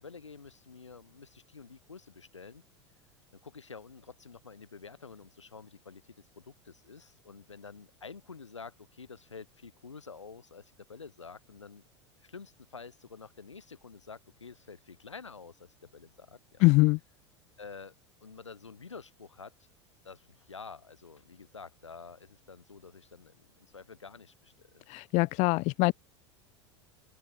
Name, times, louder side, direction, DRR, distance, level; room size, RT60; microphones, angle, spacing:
voice 1, 0.0-2.6 3.4-11.8 12.2-16.7 17.6-17.9 18.2-19.7 20.0-24.8, left 5 dB, 85° left, 5.0 m, -49 dB
voice 2, 16.6-17.0 24.9-25.9, left 25 dB, 50° left, 1.1 m, -23 dB
open air
figure-of-eight pair, 80°, 15 cm